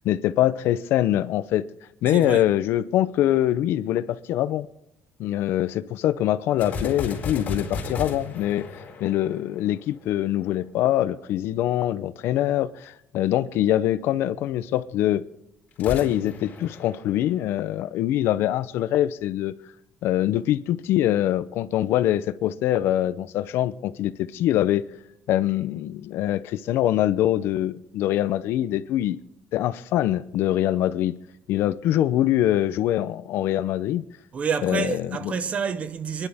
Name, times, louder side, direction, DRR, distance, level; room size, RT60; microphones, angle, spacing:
voice 1, 0.0-1.7 2.0-4.7 5.2-8.7 9.0-15.2 15.8-19.5 20.0-24.8 25.3-29.2 29.5-31.2 31.5-34.0 34.6-35.3, left 13 dB, 75° left, 0.6 m, -24 dB
voice 2, 2.1-2.5 34.3-36.3, right 6 dB, 30° right, 0.7 m, -28 dB
sound 1, 6.6-10.0 15.7-17.8, left 4 dB, 40° left, 4.0 m, -34 dB
28.5 x 11.0 x 3.5 m
cardioid pair, 165°, 4 cm